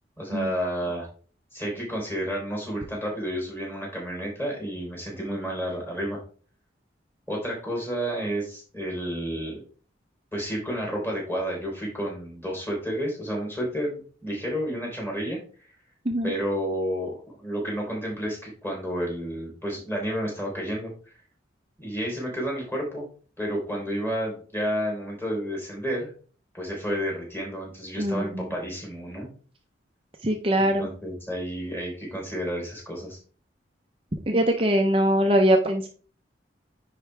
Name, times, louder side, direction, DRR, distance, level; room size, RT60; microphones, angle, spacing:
voice 1, 0.2-1.1 1.5-6.2 7.3-9.6 10.3-15.7 16.2-21.2 21.8-23.1 23.4-26.1 26.5-29.3 30.6-33.2, equal, 10° left, -2 dB, 4.0 m, -31 dB
voice 2, 28.0-28.5 30.2-30.9 34.3-35.9, right 1 dB, 30° right, 3 dB, 0.7 m, -22 dB
10.0 x 4.8 x 3.4 m, 0.41 s
head